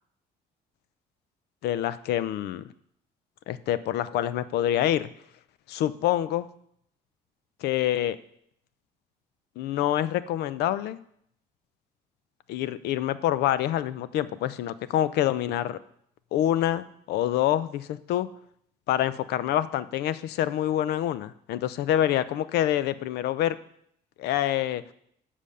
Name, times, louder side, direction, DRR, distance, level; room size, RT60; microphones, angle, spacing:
voice 1, 1.6-2.6 3.5-5.1 5.7-6.5 7.6-8.2 9.6-11.0 12.5-15.8 16.3-18.3 18.9-23.6 24.2-24.8, left 12 dB, 75° left, 16 dB, 0.5 m, -26 dB
7.4 x 5.0 x 6.7 m, 0.69 s
cardioid pair, 110°, 17 cm